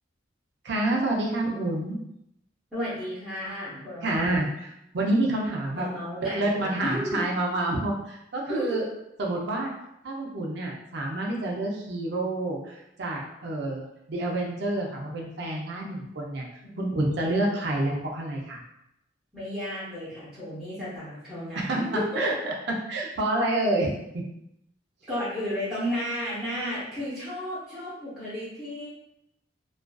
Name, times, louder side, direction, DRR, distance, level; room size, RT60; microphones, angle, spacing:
voice 1, 0.6-2.0 4.0-5.9 6.2-8.8 9.2-9.7 10.0-16.4 16.8-18.6 21.6-21.8 22.2-23.9 24.1-24.2, right 2 dB, 65° right, -1 dB, 0.5 m, -28 dB
voice 2, 2.7-4.4 5.7-7.2 8.5-8.9 16.6-17.0 19.3-22.3 25.1-28.9, equal, ahead, -12 dB, 0.8 m, -33 dB
2.4 x 2.3 x 2.2 m, 0.81 s
head